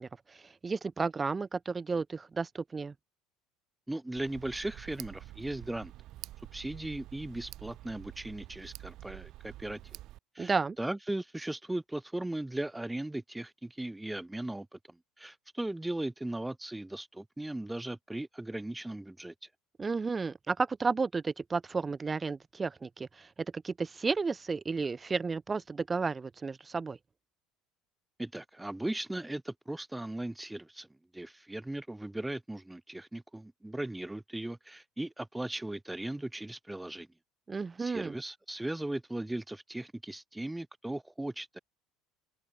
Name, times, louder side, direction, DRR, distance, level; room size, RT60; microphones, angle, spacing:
voice 1, 0.0-2.9 10.4-10.8 19.8-27.0 37.5-38.1, right 4 dB, 25° right, 2.8 m, -33 dB
voice 2, 3.9-5.9 6.5-9.8 10.3-19.5 28.2-30.9 31.1-37.1 37.8-41.6, right 1 dB, 10° right, 2.4 m, -38 dB
Tick, 4.2-10.2, right 15 dB, 55° right, 3.4 m, -48 dB
open air
hypercardioid pair, 70°, 0 cm